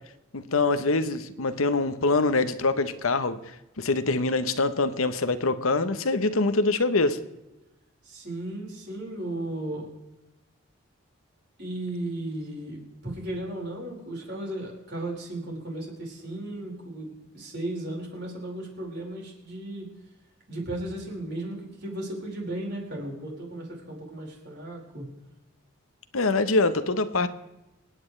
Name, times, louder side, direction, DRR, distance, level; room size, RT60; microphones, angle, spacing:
voice 1, 0.3-3.4 3.8-7.2 26.1-27.3, left 3 dB, 80° left, 12 dB, 1.0 m, -24 dB
voice 2, 8.0-9.9 11.6-19.9 20.5-25.1, right 1 dB, 50° right, -2 dB, 4.9 m, -35 dB
27.5 x 9.5 x 3.3 m, 0.98 s
head